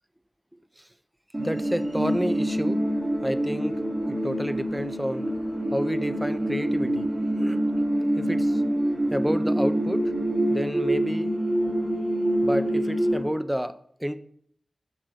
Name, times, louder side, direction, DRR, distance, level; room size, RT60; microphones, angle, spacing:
sound 1, 1.3-13.2, right 1 dB, 35° right, 1.5 m, -26 dB
voice 1, 1.4-2.8 3.2-3.8 4.1-5.3 5.7-7.1 7.3-7.6 8.2-8.6 9.1-10.1 10.5-11.3 12.4-14.2, equal, 5° right, 12 dB, 0.4 m, -29 dB
6.1 x 3.9 x 6.1 m, 0.64 s
wide cardioid pair, 95°, 0 cm